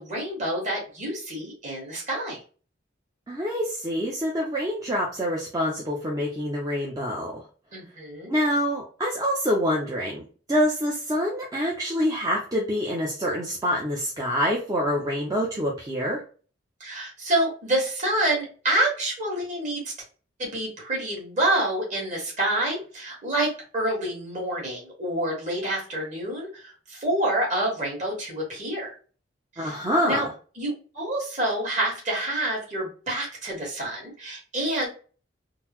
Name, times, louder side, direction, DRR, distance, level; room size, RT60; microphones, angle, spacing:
voice 1, 0.0-2.4 7.7-8.4 16.8-19.9 20.4-28.9 29.5-29.8 30.0-30.3 30.5-34.9, right 1 dB, 40° right, -2 dB, 1.6 m, -27 dB
voice 2, 3.3-7.4 8.3-16.2 29.6-30.3, equal, 20° right, -3 dB, 0.5 m, -26 dB
3.7 x 2.0 x 2.9 m, 0.38 s
head